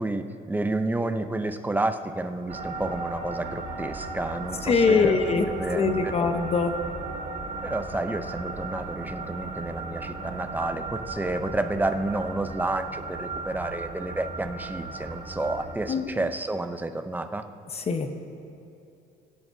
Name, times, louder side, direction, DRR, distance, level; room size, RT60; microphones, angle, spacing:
voice 1, 0.0-5.2 5.4-6.1 7.6-17.5, right 2 dB, 10° right, 8 dB, 0.7 m, -30 dB
sound 1, 2.5-15.7, right 3 dB, 40° right, 2.6 m, -36 dB
voice 2, 4.6-5.5 5.7-6.7 15.9-16.1 17.7-18.2, left 4 dB, 35° left, 7 dB, 1.0 m, -23 dB
23.5 x 10.5 x 2.8 m, 2.7 s
cardioid pair, 110°, 17 cm